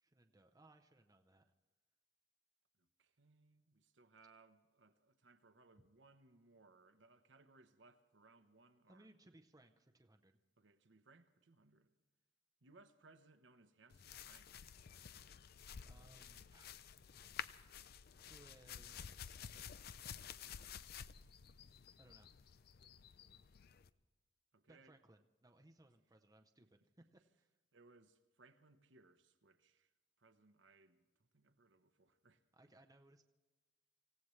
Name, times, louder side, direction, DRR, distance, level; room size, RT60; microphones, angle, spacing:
voice 1, 0.0-1.4 5.8-5.9 8.8-10.4 15.8-16.7 18.3-19.4 22.0-22.3 24.7-27.5 32.5-33.2, right 1 dB, 20° right, 0.6 m, -65 dB
voice 2, 2.8-9.1 10.6-11.9 12.6-14.8 24.5-25.0 27.7-29.9 30.2-32.4, right 3 dB, 70° right, 1.0 m, -67 dB
sound 1, 13.9-23.9, left 8 dB, 55° left, 0.5 m, -52 dB
26.0 x 16.5 x 3.2 m
head